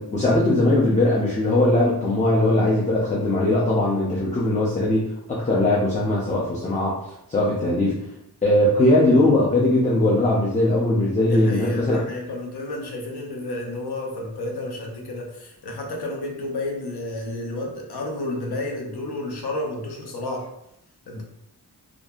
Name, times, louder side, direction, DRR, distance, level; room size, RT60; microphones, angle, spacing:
voice 1, 0.1-7.0 7.3-8.0 8.4-12.0, left 1 dB, 20° left, -5 dB, 0.5 m, -20 dB
voice 2, 7.5-7.9 11.2-20.5 21.1-21.2, left 2 dB, 80° left, 0 dB, 0.7 m, -31 dB
2.6 x 2.5 x 2.3 m, 0.82 s
wide cardioid pair, 65°, 39 cm